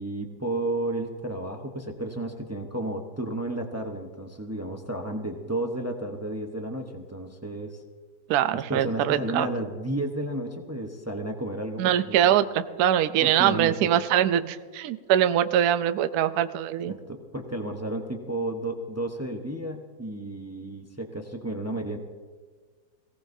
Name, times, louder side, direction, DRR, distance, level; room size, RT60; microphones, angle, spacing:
voice 1, 0.0-7.8 8.5-12.3 13.2-13.9 16.9-22.0, right 1 dB, 20° right, 3 dB, 0.4 m, -32 dB
voice 2, 8.3-9.5 11.8-16.9, right 11 dB, 70° right, 11 dB, 1.0 m, -23 dB
22.5 x 17.0 x 2.7 m, 1.5 s
omnidirectional pair, 2.0 m